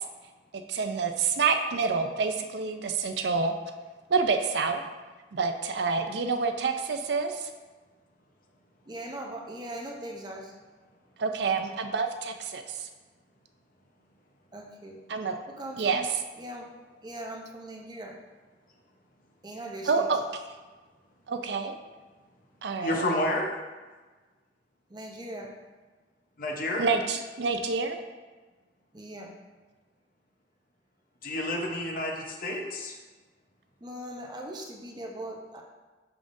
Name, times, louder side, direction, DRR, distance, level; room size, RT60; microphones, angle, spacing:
voice 1, 0.5-3.5 4.1-4.8 5.3-7.5 11.2-12.9 15.1-15.4 15.8-16.1 19.9-20.2 21.3-21.7 22.6-23.0 26.8-28.0, right 4 dB, 70° right, 6 dB, 0.5 m, -28 dB
voice 2, 8.9-10.5 14.5-15.0 15.5-16.1 16.4-16.7 17.0-18.2 19.4-20.1 24.9-25.5 28.9-29.3 33.8-35.6, right 1 dB, 25° right, 0 dB, 0.7 m, -40 dB
voice 3, 22.8-23.5 26.4-26.8 31.2-32.9, left 1 dB, 50° left, 1 dB, 0.8 m, -30 dB
10.5 x 3.6 x 2.6 m, 1.3 s
head